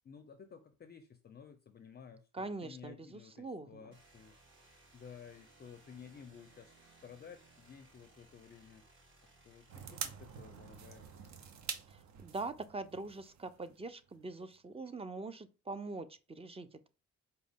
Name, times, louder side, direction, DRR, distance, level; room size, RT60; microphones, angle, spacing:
voice 1, 0.0-4.4 4.9-6.7 7.0-8.8 9.4-11.1, left 7 dB, 35° left, 0.5 m, -54 dB
voice 2, 2.3-3.9 11.9-16.9, right 3 dB, 20° right, 0.4 m, -43 dB
sound 1, 3.9-12.6, right 2 dB, 40° right, 1.5 m, -64 dB
sound 2, 9.7-14.2 14.5-14.6, right 7 dB, 65° right, 0.7 m, -46 dB
4.9 x 2.2 x 3.5 m
cardioid pair, 90°, 30 cm